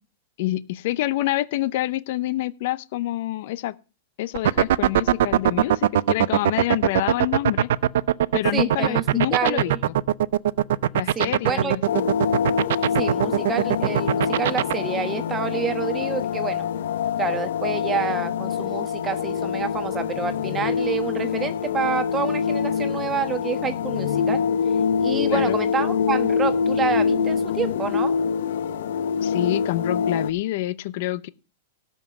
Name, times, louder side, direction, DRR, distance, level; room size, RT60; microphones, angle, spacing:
voice 1, 0.4-3.7 4.2-7.7 8.3-9.7 10.9-12.1 25.3-25.6 29.2-31.3, left 16 dB, 55° left, 16 dB, 0.7 m, -27 dB
sound 1, 4.3-14.7, right 12 dB, 65° right, 0.4 m, -19 dB
voice 2, 8.5-9.0 9.3-9.8 11.2-11.8 13.0-16.7 17.2-24.4 25.0-28.1, right 6 dB, 15° right, 11 dB, 1.1 m, -28 dB
sound 2, 11.9-30.3, left 6 dB, 70° left, 1.0 m, -25 dB
13.0 x 5.4 x 7.1 m, 0.35 s
supercardioid pair, 155°, 0 cm